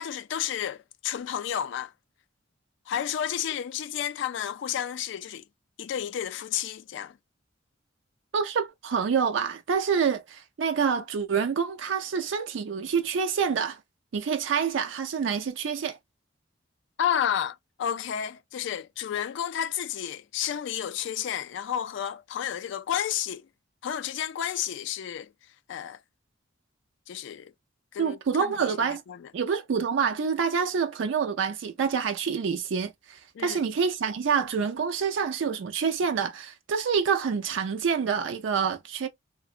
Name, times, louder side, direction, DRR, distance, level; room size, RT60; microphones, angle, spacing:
voice 1, 0.0-1.9 2.9-5.4 5.8-7.1 17.0-23.4 23.8-25.3 25.7-26.0 27.1-27.5 27.9-28.2 28.5-28.7 29.1-29.3 33.4-33.6, left 9 dB, 65° left, 0.3 m, -31 dB
voice 2, 8.3-13.8 14.1-16.0 28.0-29.0 29.3-39.1, right 6 dB, 70° right, 0.4 m, -27 dB
3.7 x 2.1 x 2.4 m
head